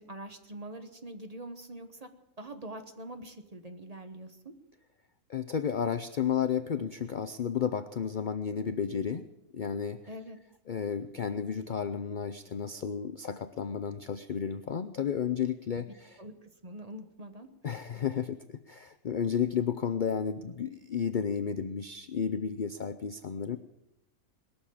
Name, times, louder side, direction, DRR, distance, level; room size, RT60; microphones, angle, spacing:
voice 1, 0.0-2.1 2.4-4.5 10.1-10.4 15.8-17.5 17.9-18.0, right 1 dB, 25° right, 7 dB, 1.1 m, -44 dB
voice 2, 5.3-9.3 9.5-10.1 10.7-16.2 17.6-23.6, left 7 dB, 70° left, 11 dB, 0.4 m, -32 dB
21.0 x 7.2 x 8.6 m, 0.90 s
omnidirectional pair, 1.6 m